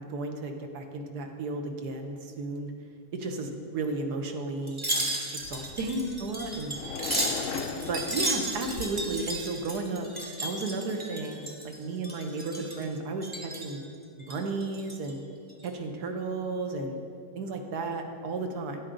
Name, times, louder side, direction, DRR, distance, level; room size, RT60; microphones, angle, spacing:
voice 1, 0.0-2.7 3.1-5.1 5.5-6.8 7.3-7.6 7.9-10.1 10.4-13.8 14.3-15.2 15.6-17.0 17.3-18.8, right 3 dB, 70° right, 4 dB, 1.4 m, -33 dB
Wind chime, 4.7-11.8 12.0-12.8 13.2-13.7 14.2-15.1 15.5-15.7, right 1 dB, 15° right, 1.0 m, -34 dB
sound 1, 5.4-9.1, left 6 dB, 70° left, 0.7 m, -38 dB
10.0 x 8.7 x 3.9 m, 2.2 s
omnidirectional pair, 1.8 m